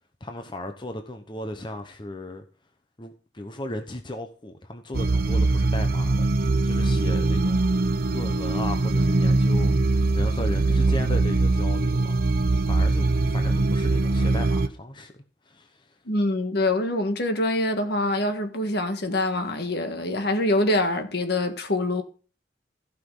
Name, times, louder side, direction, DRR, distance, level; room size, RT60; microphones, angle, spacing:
voice 1, 0.2-2.4 3.0-7.7 8.1-12.3 12.7-15.1 15.5-15.9, left 1 dB, 25° left, 1.0 m, -36 dB
sound 1, 4.9-14.7, right 2 dB, 55° right, 0.8 m, -22 dB
voice 2, 16.1-22.0, left 1 dB, 60° left, 1.5 m, -25 dB
15.5 x 6.0 x 3.9 m
head